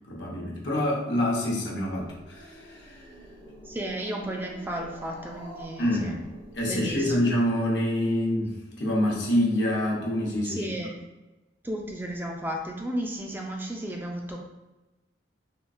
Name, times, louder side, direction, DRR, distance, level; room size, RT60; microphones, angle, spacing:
voice 1, 0.1-3.1 5.8-6.2 6.5-10.7, left 1 dB, 70° left, -3 dB, 0.8 m, -26 dB
Growling, 1.8-7.2, equal, 80° right, 1.3 m, -47 dB
voice 2, 3.7-6.2 6.6-7.1 10.4-11.0 11.6-14.4, right 1 dB, 10° right, 0 dB, 0.3 m, -33 dB
3.6 x 2.4 x 2.5 m, 1.1 s
head